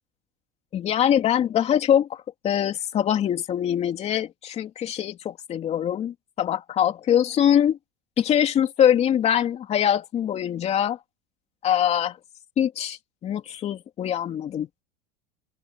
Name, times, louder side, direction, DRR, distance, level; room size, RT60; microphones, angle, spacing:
voice 1, 0.7-7.8 8.2-11.0 11.6-12.2 12.6-14.8, left 10 dB, 35° left, 3.0 m, -23 dB
supercardioid pair, 135°, 19 cm